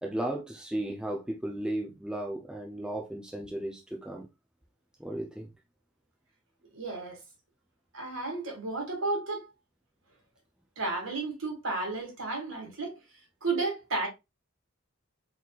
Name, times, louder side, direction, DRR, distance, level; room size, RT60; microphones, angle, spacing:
voice 1, 0.0-4.3 5.0-5.5, right 1 dB, 5° right, 0.5 m, -35 dB
voice 2, 6.7-7.2 7.9-9.5 10.8-13.0 13.4-14.1, right 3 dB, 60° right, 1.9 m, -32 dB
4.0 x 4.0 x 2.4 m
head